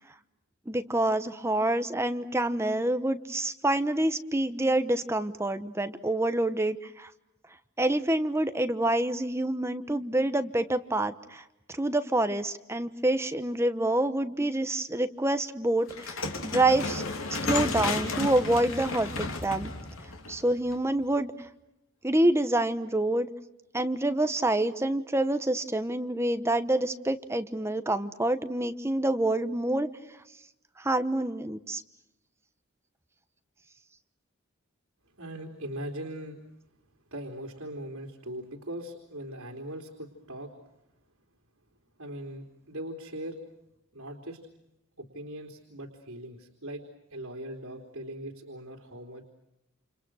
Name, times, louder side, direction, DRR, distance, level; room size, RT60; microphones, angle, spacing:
voice 1, 0.7-7.1 7.8-17.0 17.3-19.7 20.3-21.3 22.0-23.3 23.7-29.9 30.8-31.8, right 1 dB, 10° right, 10 dB, 1.0 m, -27 dB
sound 1, 15.9-21.0, left 3 dB, 75° left, 3.3 m, -33 dB
voice 2, 35.2-36.4 37.1-40.5 42.0-43.4 43.9-44.4 45.0-46.8 47.1-49.3, right 1 dB, 80° right, 1 dB, 3.6 m, -40 dB
29.5 x 29.0 x 6.4 m, 0.90 s
head